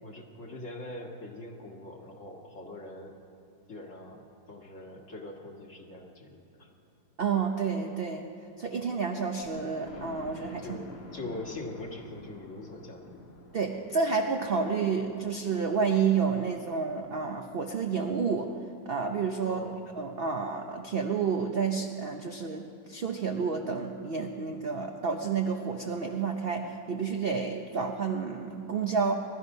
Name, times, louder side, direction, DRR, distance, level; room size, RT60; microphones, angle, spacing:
voice 1, 0.0-3.2 3.7-4.2 4.5-6.7 10.6-10.9 11.1-13.2 19.4-19.8, left 2 dB, 45° left, 0 dB, 2.0 m, -42 dB
voice 2, 7.2-8.3 8.6-10.8 13.5-18.5 18.9-19.7 20.0-29.1, right 5 dB, 50° right, 3 dB, 0.7 m, -30 dB
Thunder, 9.4-19.1 19.7-19.8 20.2-20.3 20.6-20.7, left 2 dB, 70° left, 2.1 m, -51 dB
20.0 x 13.0 x 5.4 m, 2.7 s
omnidirectional pair, 1.9 m